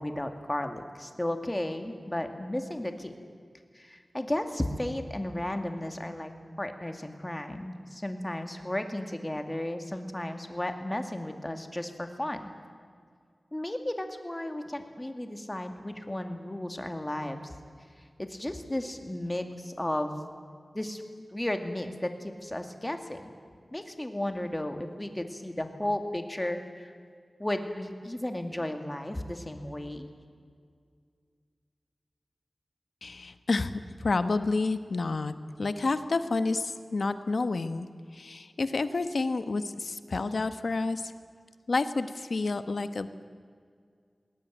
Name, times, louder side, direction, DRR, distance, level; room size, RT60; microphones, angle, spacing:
voice 1, 0.0-3.1 3.7-6.3 6.6-12.5 13.5-17.5 18.2-20.2 20.7-21.0 21.3-23.3 23.7-26.9 27.4-30.1, left 1 dB, 20° left, 6 dB, 2.3 m, -34 dB
voice 2, 33.0-37.9 38.1-41.1 41.7-43.2, left 3 dB, 75° left, 11 dB, 1.1 m, -29 dB
20.5 x 19.0 x 9.3 m, 2.1 s
wide cardioid pair, 65°, 0 cm